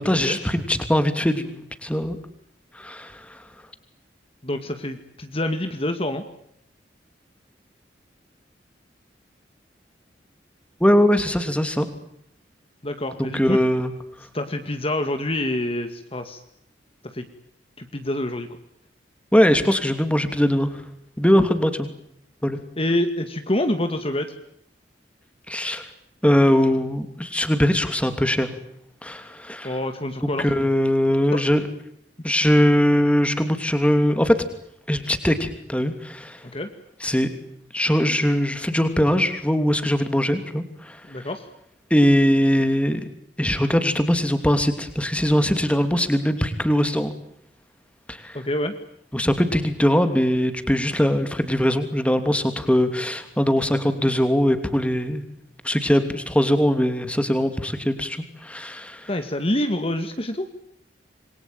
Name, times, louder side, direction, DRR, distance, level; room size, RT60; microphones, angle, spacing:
voice 1, 0.0-2.2 2.7-3.5 10.8-11.9 13.2-13.9 19.3-20.8 21.2-21.9 22.4-22.6 25.5-25.9 26.2-28.5 29.0-29.8 30.4-31.6 32.2-34.4 34.9-36.4 37.0-37.3 37.7-41.3 41.9-43.1 43.4-47.1 48.1-48.4 49.1-55.3 55.6-59.1, equal, 5° left, 9 dB, 3.0 m, -21 dB
voice 2, 4.4-6.2 12.8-13.6 14.3-16.4 17.1-17.3 17.8-18.5 22.8-24.3 29.6-30.5 31.3-31.4 36.5-36.7 41.1-41.5 48.3-48.7 59.1-60.5, left 1 dB, 30° left, 7 dB, 2.2 m, -26 dB
28.0 x 23.0 x 9.1 m, 0.72 s
head